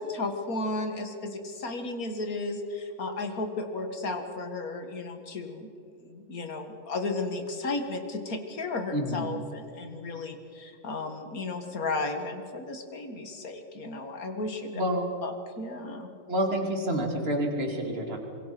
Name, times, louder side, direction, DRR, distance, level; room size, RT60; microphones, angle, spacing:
voice 1, 0.0-5.7 6.0-14.8 15.2-16.1, left 3 dB, 50° left, 6 dB, 2.3 m, -34 dB
voice 2, 8.9-9.3 14.7-15.1 16.3-18.2, equal, 30° right, 2 dB, 3.0 m, -28 dB
25.5 x 22.5 x 6.0 m, 2.5 s
omnidirectional pair, 2.0 m